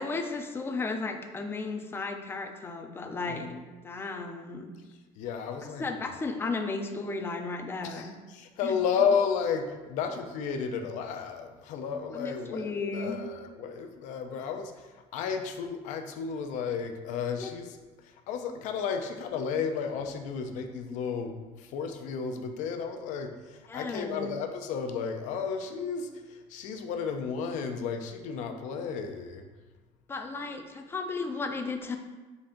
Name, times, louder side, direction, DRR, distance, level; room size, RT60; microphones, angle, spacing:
voice 1, 0.0-3.6 3.8-4.7 5.8-8.1 8.6-8.8 12.1-13.3 17.3-17.5 23.7-24.3 30.1-32.0, left 3 dB, 15° left, 5 dB, 0.4 m, -34 dB
voice 2, 3.3-3.6 5.2-6.0 7.8-29.5, left 6 dB, 65° left, 6 dB, 0.5 m, -33 dB
4.1 x 3.3 x 3.7 m, 1.3 s
cardioid pair, 125°, 13 cm